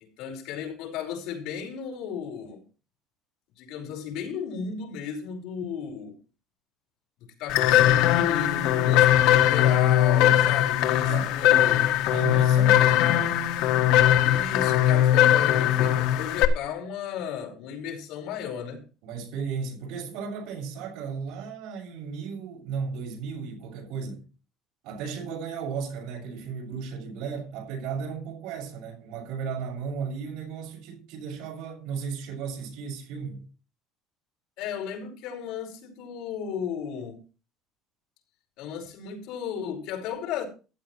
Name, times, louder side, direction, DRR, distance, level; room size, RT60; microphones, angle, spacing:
voice 1, 0.2-2.6 3.6-6.2 7.4-11.9 14.2-18.8 34.6-37.2 38.6-40.4, left 7 dB, 60° left, 5.1 m, -34 dB
Melodiner Snakz, 7.5-16.5, left 12 dB, 80° left, 1.7 m, -20 dB
voice 2, 11.0-11.4 12.1-13.3 19.0-24.2 24.8-33.4, right 6 dB, 70° right, 6.7 m, -35 dB
15.0 x 12.0 x 3.2 m
cardioid pair, 165°, 0 cm